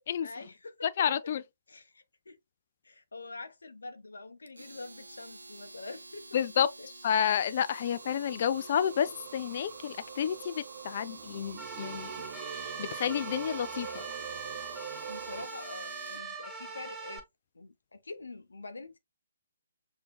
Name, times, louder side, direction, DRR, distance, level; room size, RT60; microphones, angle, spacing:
voice 1, 0.2-1.1 1.7-2.4 2.8-6.9 15.1-17.2 17.5-19.0, left 3 dB, 75° left, 0.7 m, -45 dB
voice 2, 0.8-1.4 6.3-6.7 7.0-12.1 12.4-14.0, left 8 dB, 45° left, 0.4 m, -30 dB
Domestic sounds home sounds, 4.5-16.3, right 2 dB, 80° right, 0.6 m, -49 dB
Singing, 7.3-15.5, right 9 dB, 45° right, 0.3 m, -45 dB
sound 1, 11.6-17.2, right 4 dB, 5° right, 1.0 m, -42 dB
6.7 x 2.8 x 2.2 m
figure-of-eight pair, 140°, 0 cm